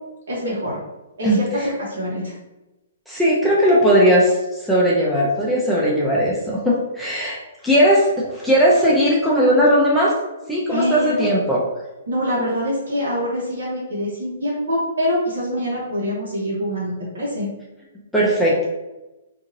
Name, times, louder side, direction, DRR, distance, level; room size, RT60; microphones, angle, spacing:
voice 1, 0.3-0.8 1.2-2.3 10.7-11.2 12.1-17.5, equal, 70° right, -7 dB, 1.0 m, -24 dB
voice 2, 3.1-4.3 4.6-7.4 7.6-10.1 10.5-11.6 18.1-18.7, equal, ahead, -7 dB, 0.6 m, -17 dB
2.8 x 2.6 x 2.6 m, 1.0 s
hypercardioid pair, 130°, 0 cm